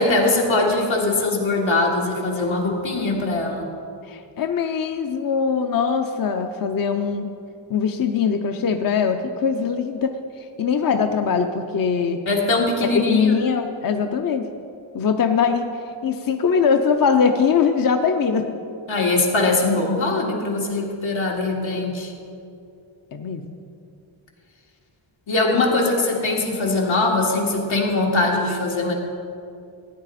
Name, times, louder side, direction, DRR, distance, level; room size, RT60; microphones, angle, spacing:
voice 1, 0.0-3.7 12.3-13.4 18.9-22.1 25.3-28.9, left 2 dB, 85° left, -2 dB, 2.1 m, -21 dB
voice 2, 4.1-7.3 7.7-12.2 13.0-14.4 14.9-15.7 16.0-18.5 23.1-23.6 25.5-25.6, left 6 dB, 50° left, 6 dB, 0.6 m, -21 dB
15.0 x 9.7 x 4.1 m, 2.5 s
wide cardioid pair, 120°, 46 cm